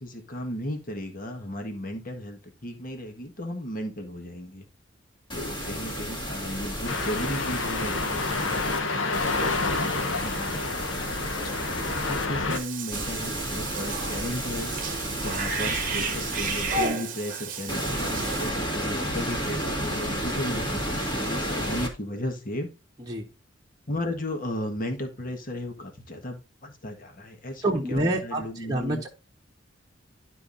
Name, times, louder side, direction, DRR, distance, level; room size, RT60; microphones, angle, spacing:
voice 1, 0.0-4.6 5.3-8.5 9.6-10.8 11.4-14.7 15.2-21.0 21.3-22.7 23.9-29.0, left 1 dB, 45° left, 4 dB, 1.6 m, -35 dB
sound 1, 5.3-8.8 9.1-12.3 12.9-16.9 17.7-21.9, equal, 25° left, 2.0 m, -32 dB
sound 2, 6.9-12.6, left 3 dB, 85° left, 1.2 m, -29 dB
Cat / Bathtub (filling or washing), 12.5-18.5, right 4 dB, 45° right, 1.0 m, -32 dB
voice 2, 27.6-29.1, right 1 dB, 20° right, -2 dB, 1.3 m, -27 dB
12.0 x 4.6 x 2.6 m, 0.30 s
head